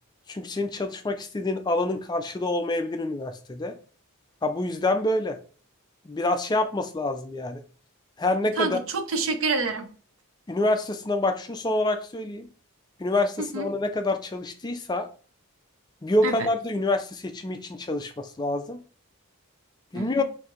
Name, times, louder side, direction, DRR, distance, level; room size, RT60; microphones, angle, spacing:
voice 1, 0.3-3.7 4.4-5.4 6.1-7.6 8.2-8.8 10.5-12.5 13.0-15.1 16.0-18.8 19.9-20.2, left 2 dB, 20° left, 6 dB, 0.3 m, -27 dB
voice 2, 8.6-9.9 13.4-13.7 16.2-16.5 19.9-20.2, right 4 dB, 65° right, 8 dB, 0.6 m, -28 dB
4.6 x 2.6 x 3.7 m, 0.40 s
head